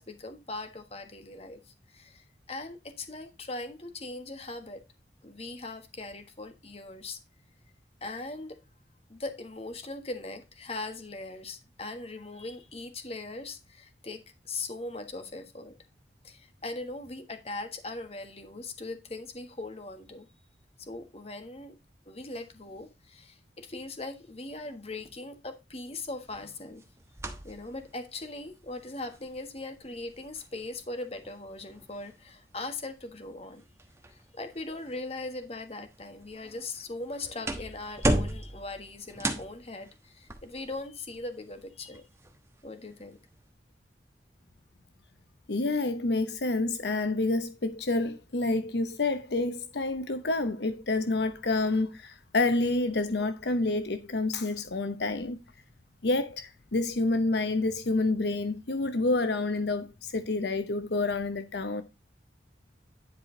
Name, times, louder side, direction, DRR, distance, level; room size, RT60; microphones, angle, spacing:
voice 1, 0.0-4.8 5.2-7.2 8.0-8.6 9.1-15.7 16.2-20.3 20.8-21.8 22.1-26.8 27.4-33.6 34.1-42.0 42.6-43.2, left 2 dB, 35° left, 1.4 m, -40 dB
sound 1, 26.1-43.5, right 1 dB, 15° right, 1.2 m, -38 dB
voice 2, 45.5-55.4 56.0-61.8, left 2 dB, 75° left, 0.8 m, -28 dB
10.5 x 4.9 x 3.9 m
head